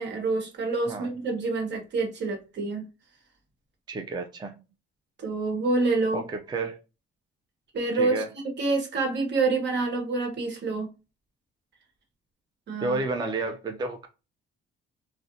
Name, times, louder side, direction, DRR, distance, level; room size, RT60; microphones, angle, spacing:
voice 1, 0.0-2.9 5.2-6.2 7.7-8.2 8.6-10.9 12.7-13.0, right 3 dB, 60° right, 1.1 m, -27 dB
voice 2, 3.9-4.6 6.1-6.8 7.9-8.3 12.8-14.1, right 3 dB, 20° right, 0.4 m, -31 dB
2.4 x 2.1 x 2.6 m
cardioid pair, 90°, 20 cm